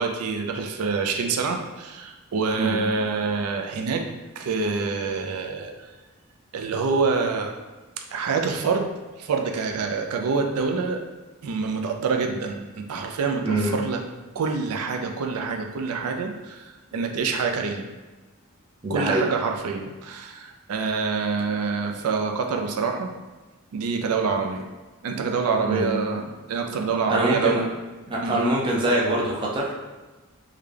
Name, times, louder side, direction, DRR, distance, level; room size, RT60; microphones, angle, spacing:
voice 1, 0.0-4.0 4.4-5.9 6.5-7.5 8.1-8.9 9.2-11.0 11.4-14.0 14.3-17.9 18.9-23.1 23.7-24.7 25.0-27.6 28.2-28.4, right 4 dB, 80° right, 3 dB, 0.4 m, -26 dB
voice 2, 13.4-13.7 18.8-19.2 25.7-25.9 27.1-27.6 28.1-29.8, right 1 dB, 20° right, -4 dB, 0.5 m, -24 dB
3.7 x 2.2 x 3.3 m, 1.2 s
head